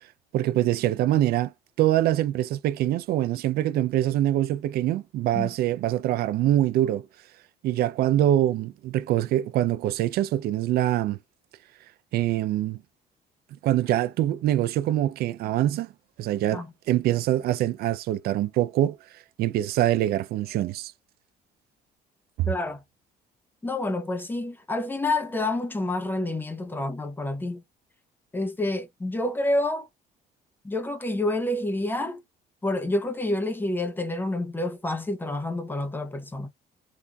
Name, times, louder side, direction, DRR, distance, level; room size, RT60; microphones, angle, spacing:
voice 1, 0.3-1.5 1.8-7.1 7.6-11.2 12.1-12.8 13.6-15.9 16.2-19.0 19.4-20.9 22.4-22.5, right 13 dB, 65° right, 0.4 m, -24 dB
voice 2, 22.5-22.8 23.6-27.6 28.3-29.9 30.6-32.2 32.6-36.5, left 2 dB, 10° left, 0.7 m, -28 dB
3.5 x 2.5 x 2.2 m
cardioid pair, 110°, 17 cm